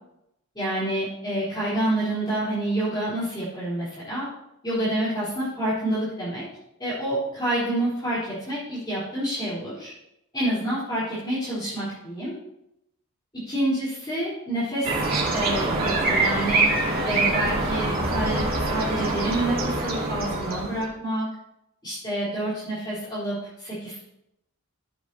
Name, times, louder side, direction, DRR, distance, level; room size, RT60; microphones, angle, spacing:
voice 1, 0.5-4.3 4.6-6.4 6.8-9.9 10.3-12.3 13.5-16.6 17.0-21.3 21.8-24.0, right 1 dB, 20° left, -10 dB, 3.8 m, -28 dB
sound 1, 14.8-20.9, right 2 dB, 45° right, 2.3 m, -24 dB
14.0 x 7.9 x 2.8 m, 0.83 s
head